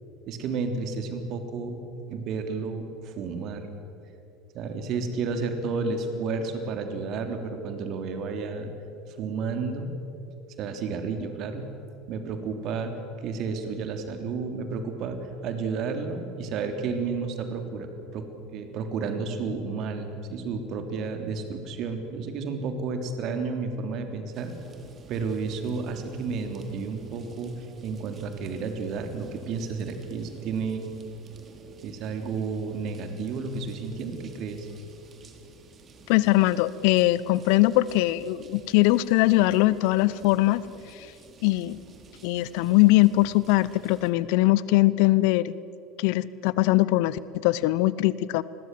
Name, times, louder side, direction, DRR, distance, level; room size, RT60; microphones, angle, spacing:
voice 1, 0.3-1.8 2.1-3.7 4.5-8.7 9.1-9.9 10.6-11.7 12.1-18.3 18.5-24.5 25.1-27.5 27.8-30.8 31.8-34.7, right 4 dB, 50° right, 6 dB, 3.4 m, -31 dB
sound 1, 24.3-44.1, right 4 dB, 35° right, 3.4 m, -51 dB
voice 2, 36.1-40.6 41.4-41.8 42.2-45.5 46.0-48.4, left 18 dB, 60° left, 19 dB, 0.7 m, -21 dB
28.5 x 21.5 x 7.7 m, 3.0 s
figure-of-eight pair, 70°, 0 cm